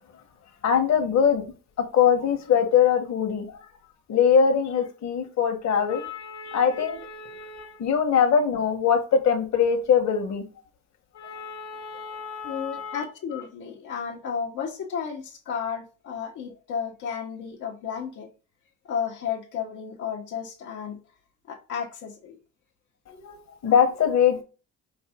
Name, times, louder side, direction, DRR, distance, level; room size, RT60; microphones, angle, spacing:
voice 1, 0.6-1.4 1.8-3.6 4.1-10.5 11.1-13.0 23.1-24.4, left 7 dB, 60° left, 1.3 m, -23 dB
voice 2, 12.4-18.3 18.9-21.0 21.5-22.4, left 7 dB, 80° left, 1.2 m, -33 dB
5.6 x 2.6 x 3.6 m
cardioid pair, 90°, 30 cm